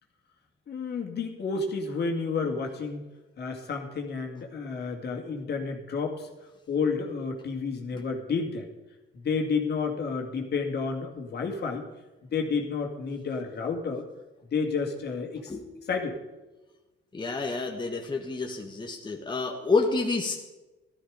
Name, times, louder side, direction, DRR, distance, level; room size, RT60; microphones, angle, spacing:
voice 1, 0.7-3.0 3.4-6.3 6.7-8.7 9.1-11.8 12.3-14.0 14.5-15.5 15.9-16.2, left 4 dB, 55° left, 2 dB, 2.4 m, -30 dB
voice 2, 15.5-15.9 17.1-20.3, left 3 dB, 25° left, 1 dB, 1.5 m, -29 dB
13.0 x 13.0 x 5.1 m, 1.1 s
cardioid pair, 90°, 20 cm